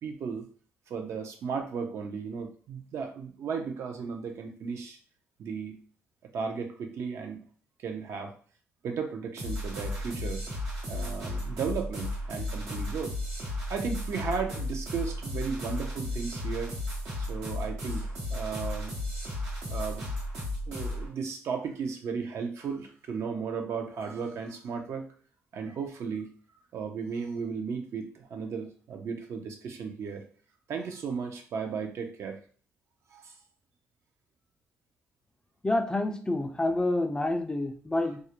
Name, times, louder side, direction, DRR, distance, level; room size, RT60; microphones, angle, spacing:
voice 1, 0.0-0.5 0.9-5.0 5.4-5.7 6.3-7.4 7.8-8.3 8.8-10.4 10.9-13.1 13.7-16.8 17.2-18.9 19.7-20.0 20.7-25.1 25.5-26.3 26.7-30.2 30.7-32.4 33.1-33.3, right 5 dB, 65° right, 4 dB, 0.5 m, -35 dB
sound 1, 9.4-21.1, left 1 dB, 90° right, 1.0 m, -34 dB
voice 2, 35.6-38.2, left 2 dB, 15° left, 6 dB, 0.3 m, -28 dB
2.3 x 2.1 x 2.8 m, 0.44 s
cardioid pair, 85°, 5 cm